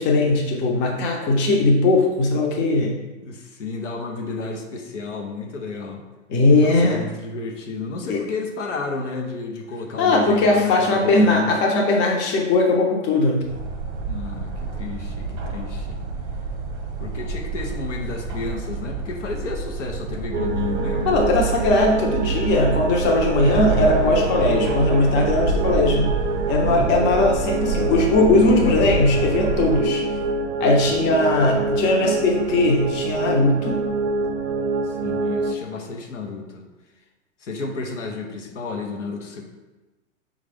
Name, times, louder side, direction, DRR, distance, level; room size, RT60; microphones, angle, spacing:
voice 1, 0.0-2.9 6.3-7.0 8.1-8.2 10.0-13.4 21.1-26.1 26.5-30.0 30.6-33.8, left 2 dB, 30° left, 0 dB, 0.8 m, -19 dB
voice 2, 3.2-6.0 6.6-11.5 14.1-16.0 17.0-21.2 26.5-27.1 30.8-31.1 34.8-36.6 37.4-39.4, left 4 dB, 75° left, 2 dB, 0.8 m, -32 dB
sound 1, 13.5-29.8, right 3 dB, 45° right, 0.9 m, -29 dB
sound 2, 20.3-35.5, right 4 dB, 65° right, 0.5 m, -26 dB
5.3 x 2.5 x 3.3 m, 1.2 s
figure-of-eight pair, 100°, 37 cm